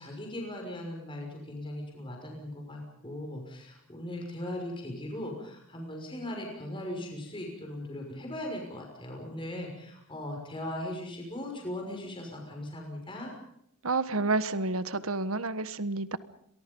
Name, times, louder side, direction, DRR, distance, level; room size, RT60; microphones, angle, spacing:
voice 1, 0.0-13.3, left 1 dB, 25° left, 1 dB, 6.1 m, -39 dB
voice 2, 13.8-16.2, right 3 dB, 80° right, 14 dB, 1.4 m, -29 dB
29.5 x 23.0 x 5.5 m, 0.73 s
head